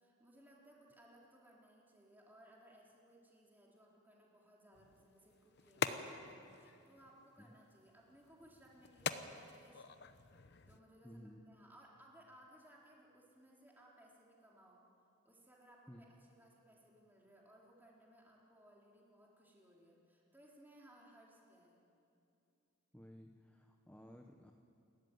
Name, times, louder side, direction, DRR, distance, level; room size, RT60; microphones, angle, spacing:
voice 1, 0.0-9.8 10.2-10.3 10.7-14.8 15.2-21.9, right 1 dB, 10° right, -3 dB, 3.7 m, -63 dB
sound 1, 4.7-10.8, left 5 dB, 50° left, 0.9 m, -45 dB
voice 2, 11.0-11.4 15.9-16.0 22.9-24.5, equal, 5° left, 3 dB, 0.9 m, -56 dB
29.0 x 13.5 x 9.4 m, 2.7 s
head